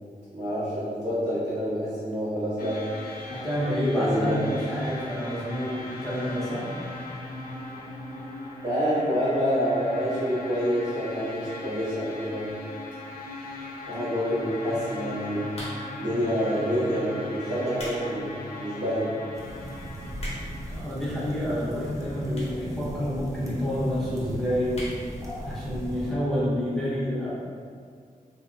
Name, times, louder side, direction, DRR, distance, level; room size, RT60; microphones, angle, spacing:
voice 1, 0.3-2.8 3.9-4.5 8.6-12.5 13.9-15.5 16.0-18.3 18.6-19.1, equal, 45° right, -14 dB, 0.8 m, -27 dB
sound 1, 2.6-20.8, left 2 dB, 75° left, 0.4 m, -39 dB
voice 2, 3.3-6.7 20.7-24.7 25.2-27.3, equal, ahead, -9 dB, 0.8 m, -28 dB
sound 2, 15.5-16.1 16.8-17.0 17.5-18.0 18.5-18.6 19.2-19.3 19.5-19.6 19.8-20.7 21.5-21.6 22.3-22.7 23.0-23.1 23.2-23.3 23.6-23.7 24.0-24.2 24.7-25.0 25.4-25.5 25.7-25.8, left 1 dB, 45° left, 0.8 m, -39 dB
sound 3, 19.3-26.1, equal, 20° right, 0.4 m, -38 dB
2.6 x 2.0 x 2.4 m, 2.1 s
wide cardioid pair, 90°, 15 cm